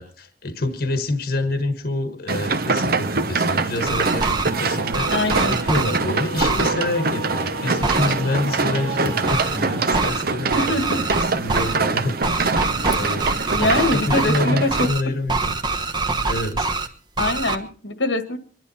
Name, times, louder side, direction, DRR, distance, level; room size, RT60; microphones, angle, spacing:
voice 1, 0.0-5.1 5.4-12.2 12.9-15.8 16.3-16.7, left 2 dB, 55° left, 9 dB, 1.4 m, -27 dB
sound 1, 2.3-14.9, right 3 dB, 55° right, 1.0 m, -24 dB
sound 2, 3.8-4.5 4.9-6.0 6.4-6.7 7.8-8.1 9.3-9.6 9.9-10.2 10.5-11.8 12.2-14.4 14.7-15.0 15.3-16.9 17.2-17.6, right 3 dB, 25° right, 1.2 m, -24 dB
Singing / Musical instrument, 4.5-10.1, right 2 dB, 70° right, 2.3 m, -32 dB
voice 2, 5.1-5.5 10.5-11.0 13.5-14.9 17.2-18.4, left 2 dB, 80° left, 9 dB, 1.8 m, -23 dB
25.0 x 11.0 x 4.2 m, 0.41 s
head